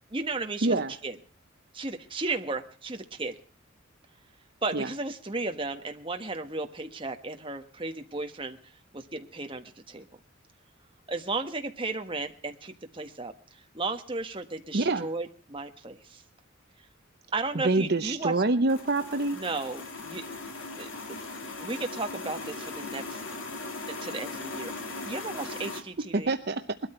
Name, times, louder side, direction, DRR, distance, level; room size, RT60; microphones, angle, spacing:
voice 1, 0.1-1.2 1.7-3.3 4.6-8.6 8.9-10.1 11.1-13.3 13.7-16.2 17.3-18.4 19.3-20.2 20.7-23.2 23.9-26.3, right 3 dB, 25° right, 5 dB, 1.4 m, -34 dB
voice 2, 14.7-15.1 17.5-19.4 26.1-26.6, right 2 dB, 50° right, 8 dB, 0.8 m, -26 dB
sound 1, 18.7-25.8, left 3 dB, 70° left, 2.9 m, -39 dB
21.5 x 13.0 x 4.4 m, 0.41 s
head